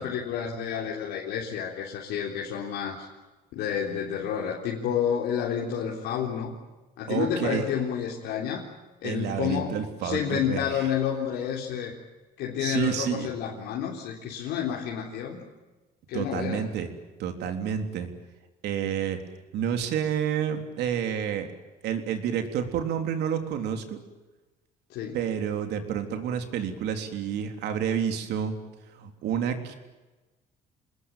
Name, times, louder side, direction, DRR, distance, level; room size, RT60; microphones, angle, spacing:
voice 1, 0.0-3.1 3.5-6.6 7.0-8.7 9.0-11.9 12.4-15.4 16.1-16.7 24.9-25.2, left 8 dB, 85° left, -3 dB, 3.8 m, -30 dB
voice 2, 7.1-7.6 9.0-10.8 12.6-13.3 16.1-16.9 17.2-18.1 18.6-19.2 19.5-21.5 21.8-24.0 25.1-28.6 29.0-29.7, right 8 dB, 80° right, 6 dB, 3.7 m, -29 dB
27.0 x 21.0 x 9.3 m, 1.2 s
cardioid pair, 110°, 17 cm